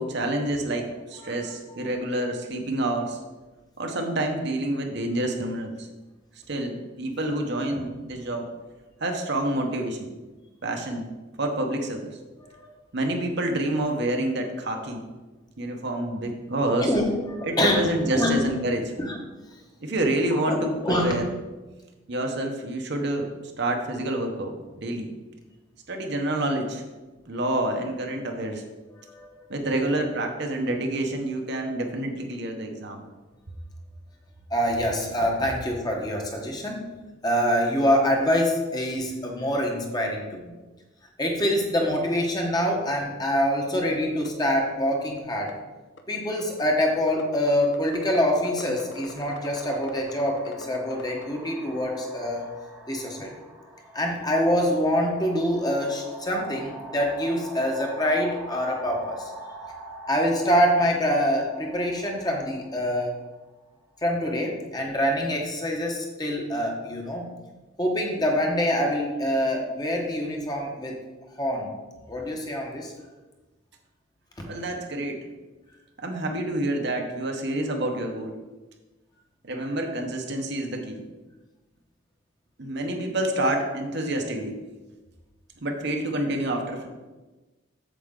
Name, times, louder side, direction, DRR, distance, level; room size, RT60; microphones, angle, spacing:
voice 1, 0.0-3.2 3.8-5.9 6.5-8.5 9.0-10.1 10.6-11.1 11.4-12.2 12.9-15.0 15.6-16.9 17.4-18.8 19.8-21.3 22.1-23.3 23.6-25.1 25.9-26.8 27.3-28.6 29.5-33.0 53.2-53.3 74.5-75.3 76.0-78.3 79.4-81.0 82.6-84.6 85.6-86.9, right 1 dB, 55° right, 3 dB, 1.0 m, -28 dB
voice 2, 16.8-18.5 19.0-19.2 20.4-21.1 29.0-29.4 34.5-36.9 37.2-40.5 41.2-45.5 46.1-52.4 52.9-53.3 53.9-59.3 60.1-63.1 64.0-67.3 67.8-71.0 71.4-71.7 72.1-72.9, equal, 20° left, 1 dB, 1.1 m, -25 dB
sound 1, 43.8-43.9 44.2-44.3 44.6-44.7 44.9-45.5 46.0-46.6 47.1-51.2, left 3 dB, 60° left, 0.7 m, -42 dB
sound 2, 46.2-46.4 47.3-64.0, right 1 dB, 5° right, 1.2 m, -44 dB
8.3 x 6.9 x 3.8 m, 1.2 s
head